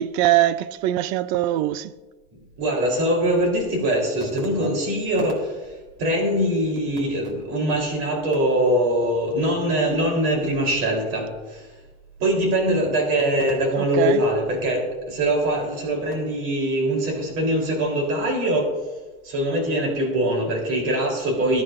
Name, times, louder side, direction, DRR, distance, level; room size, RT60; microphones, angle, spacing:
voice 1, 0.0-1.9 13.8-14.2, right 14 dB, 85° right, 0.6 m, -22 dB
voice 2, 2.6-5.6 6.0-11.7 12.2-18.7 19.2-21.6, right 1 dB, 45° right, 3.8 m, -22 dB
20.5 x 9.8 x 2.6 m
cardioid pair, 175°, 32 cm